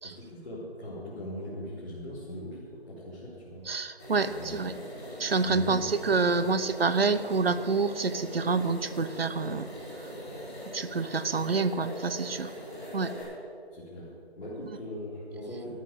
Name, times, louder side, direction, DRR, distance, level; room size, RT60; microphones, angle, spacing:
voice 1, 0.0-3.6 4.2-4.6 5.4-6.1 6.4-6.5 13.2-13.3 13.7-14.1 14.4-15.8, left 1 dB, 60° left, -9 dB, 3.9 m, -40 dB
voice 2, 3.7-4.7 5.2-9.7 10.7-12.5 12.9-13.1, right 4 dB, 65° right, 13 dB, 0.8 m, -27 dB
sound 1, 4.0-13.2, equal, 10° left, 3.7 m, -41 dB
12.5 x 11.0 x 7.0 m, 2.3 s
figure-of-eight pair, 175°, 32 cm